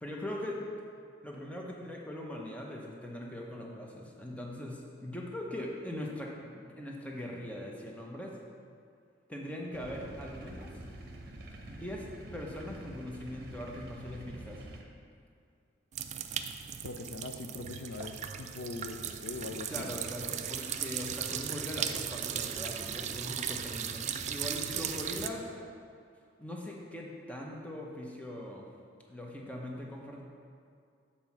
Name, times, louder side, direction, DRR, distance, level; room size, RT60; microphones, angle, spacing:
voice 1, 0.0-0.6 1.2-8.4 9.3-10.7 11.7-14.6 19.7-25.5 26.4-28.7 29.1-30.2, left 1 dB, 5° left, -2 dB, 0.8 m, -41 dB
sound 1, 9.7-14.8, right 1 dB, 50° right, 0.8 m, -47 dB
sound 2, 15.9-25.3, right 8 dB, 35° right, 0.3 m, -37 dB
voice 2, 16.8-20.1 25.3-25.6, left 3 dB, 65° left, 5 dB, 0.4 m, -42 dB
7.5 x 4.2 x 6.0 m, 2.3 s
head